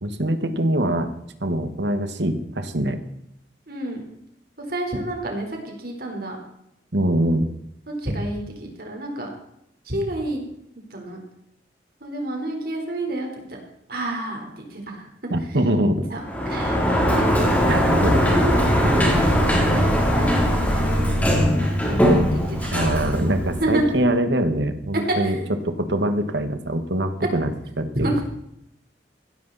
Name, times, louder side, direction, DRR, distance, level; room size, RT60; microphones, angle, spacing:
voice 1, 0.0-1.1 1.4-3.0 6.9-7.5 15.3-16.0 17.7-18.2 22.7-25.4 25.6-27.5 27.8-28.1, right 1 dB, 80° right, 9 dB, 1.6 m, -23 dB
voice 2, 3.7-4.0 4.6-6.4 7.9-9.3 9.8-10.4 10.9-11.2 12.0-13.6 13.9-15.1 15.4-15.6 16.1-17.3 18.1-22.7 23.6-23.8 25.1-25.5 27.9-28.1, right 1 dB, 55° right, 1 dB, 4.1 m, -30 dB
Sliding door, 16.2-24.0, equal, 10° left, 3.2 m, -20 dB
16.0 x 13.5 x 4.1 m, 0.78 s
head